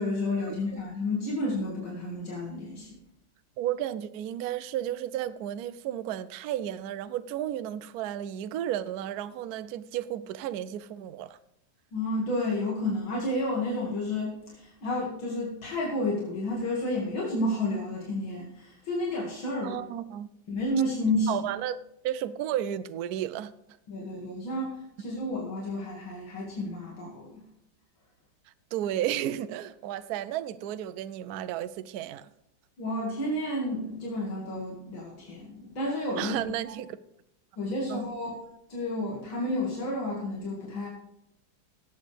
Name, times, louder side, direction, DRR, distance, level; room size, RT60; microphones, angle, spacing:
voice 1, 0.0-3.0 11.9-19.8 20.5-21.4 23.9-27.4 32.8-36.4 37.6-38.4 38.7-40.9, left 1 dB, 85° left, 2.9 m, -31 dB
voice 2, 3.6-11.4 19.6-20.3 21.3-21.8 22.0-23.5 28.7-32.3 36.2-37.0 37.9-38.1, right 11 dB, 70° right, 0.9 m, -33 dB
18.0 x 8.0 x 3.4 m
omnidirectional pair, 2.1 m